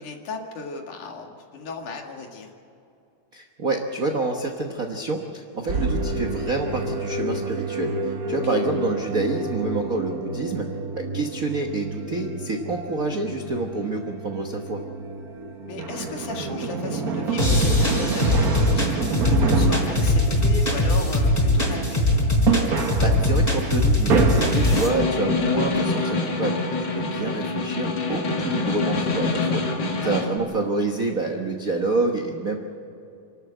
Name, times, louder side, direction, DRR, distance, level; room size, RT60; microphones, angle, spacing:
voice 1, 0.0-2.5 8.2-8.4 15.7-22.1 30.0-30.3, left 4 dB, 75° left, 2 dB, 3.4 m, -35 dB
voice 2, 3.3-10.7 10.9-14.8 23.0-29.6 30.0-32.6, right 3 dB, 80° right, 3 dB, 0.7 m, -27 dB
sound 1, 5.7-25.6, right 4 dB, 50° right, 1.1 m, -29 dB
sound 2, 17.4-24.9, left 1 dB, 10° left, 3.7 m, -21 dB
Snare drum, 24.2-30.4, left 3 dB, 40° left, 2.4 m, -26 dB
27.5 x 12.5 x 8.1 m, 2.6 s
omnidirectional pair, 3.7 m